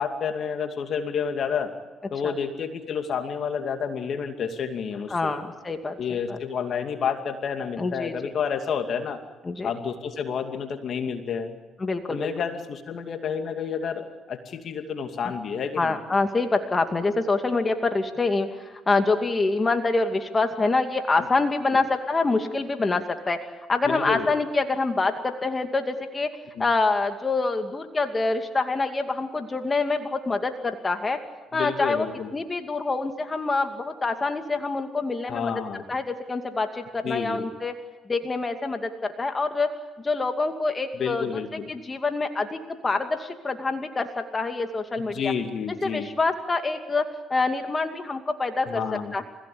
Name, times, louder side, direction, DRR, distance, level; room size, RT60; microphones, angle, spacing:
voice 1, 0.0-1.7 2.1-5.3 6.0-9.2 9.6-11.6 12.1-15.9 23.9-24.3 26.6-26.7 31.5-32.3 35.3-35.8 37.0-37.5 40.9-41.7 45.1-46.1 48.7-49.1, left 6 dB, 60° left, 6 dB, 2.6 m, -30 dB
voice 2, 5.1-6.0 6.3-6.4 7.8-8.1 9.4-9.7 11.8-12.3 15.8-26.3 26.6-31.2 31.5-32.1 32.3-35.5 35.9-37.7 38.1-39.7 40.0-41.4 41.7-45.3 45.8-47.0 47.3-48.8 49.1-49.2, left 3 dB, 30° left, 6 dB, 2.5 m, -26 dB
30.0 x 16.5 x 8.7 m, 1.2 s
supercardioid pair, 65°, 0 cm